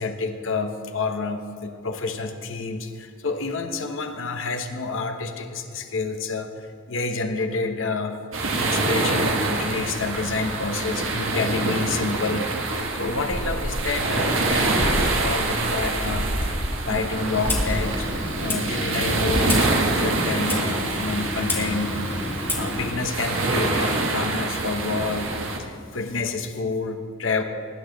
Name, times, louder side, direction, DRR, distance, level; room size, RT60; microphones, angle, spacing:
voice 1, 0.0-8.2 8.5-18.1 18.3-22.0 22.5-25.3 25.6-27.4, left 3 dB, 70° left, 6 dB, 1.0 m, -29 dB
sound 1, 8.3-25.6, right 2 dB, 75° right, 1.3 m, -26 dB
sound 2, 10.7-16.9 17.2-18.2, equal, 30° left, 1.6 m, -32 dB
Clock, 17.3-22.9, left 2 dB, 10° left, 1.7 m, -30 dB
19.5 x 9.4 x 3.9 m, 2.3 s
head